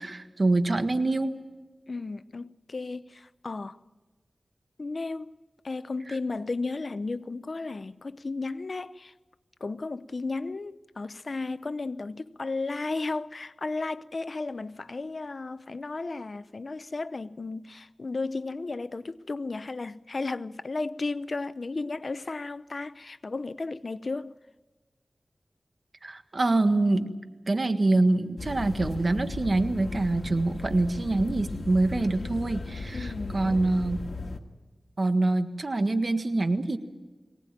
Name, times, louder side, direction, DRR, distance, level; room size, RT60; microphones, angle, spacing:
voice 1, 0.0-1.3 26.0-27.1 27.5-34.1 35.0-36.8, right 2 dB, 55° right, 1.6 m, -25 dB
voice 2, 1.9-3.8 4.8-5.4 5.6-9.1 9.6-24.3 32.9-33.6, left 3 dB, 60° left, 0.7 m, -34 dB
sound 1, 28.4-34.4, left 3 dB, 85° left, 1.7 m, -37 dB
23.0 x 18.5 x 8.9 m
wide cardioid pair, 55°, 0 cm